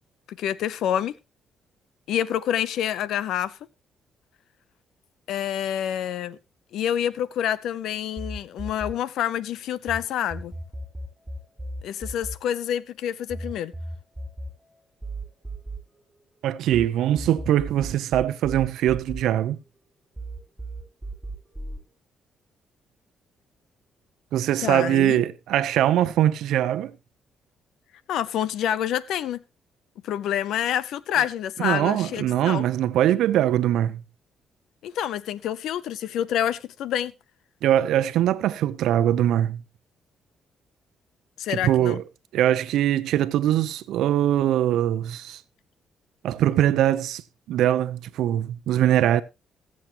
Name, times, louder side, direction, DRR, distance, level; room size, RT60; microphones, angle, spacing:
voice 1, 0.3-1.1 2.1-3.6 5.3-6.4 6.7-10.5 11.8-13.7 24.6-25.2 28.1-29.4 30.0-32.6 34.8-37.1 41.4-42.0, left 10 dB, 80° left, 0.7 m, -27 dB
sound 1, 8.2-10.0 10.3-16.9 17.2-19.8 20.2-21.8, right 1 dB, 10° right, 4.2 m, -36 dB
voice 2, 16.4-19.6 24.3-26.9 31.6-34.0 37.6-39.6 41.5-42.0 42.3-45.4 46.2-47.2 47.5-49.2, right 12 dB, 85° right, 0.8 m, -22 dB
20.5 x 7.6 x 3.0 m
cardioid pair, 90°, 0 cm